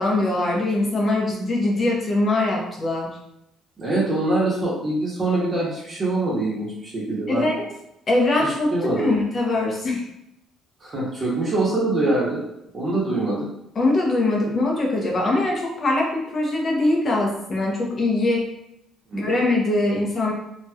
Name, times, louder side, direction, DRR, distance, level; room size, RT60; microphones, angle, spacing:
voice 1, 0.0-3.1 7.3-7.6 8.1-8.7 9.0-10.0 13.8-18.5 19.1-20.3, left 2 dB, 35° left, -2 dB, 0.7 m, -22 dB
voice 2, 3.8-7.5 8.4-9.1 10.8-12.4 12.7-13.5 19.1-19.4, right 2 dB, 30° right, -6 dB, 0.9 m, -24 dB
2.9 x 2.7 x 2.3 m, 0.81 s
cardioid pair, 125°, 0 cm